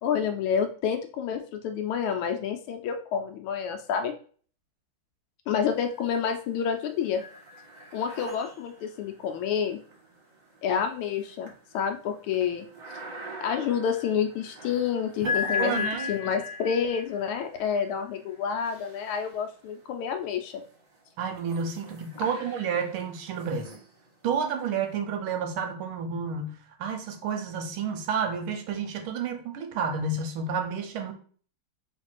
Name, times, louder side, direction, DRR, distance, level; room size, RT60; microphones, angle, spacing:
voice 1, 0.0-4.1 5.5-7.2 7.9-9.8 10.6-12.7 13.4-20.6, left 7 dB, 90° left, 4 dB, 1.5 m, -29 dB
sound 1, 5.6-6.3 6.7-19.8 20.5-24.9, left 4 dB, 35° right, 0.7 m, -39 dB
voice 2, 15.2-16.1 21.2-23.7 24.2-31.1, right 5 dB, 85° right, 6 dB, 1.6 m, -30 dB
3.2 x 3.2 x 4.4 m, 0.44 s
omnidirectional pair, 2.3 m